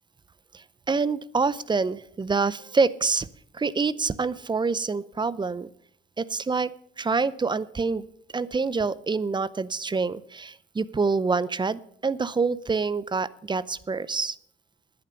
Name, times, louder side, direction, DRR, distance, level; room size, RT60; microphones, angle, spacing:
voice 1, 0.5-3.3 3.5-5.7 6.2-6.7 7.0-8.1 8.3-14.4, right 4 dB, 25° right, 19 dB, 0.6 m, -26 dB
10.5 x 9.5 x 6.7 m, 0.68 s
cardioid pair, 90°, 20 cm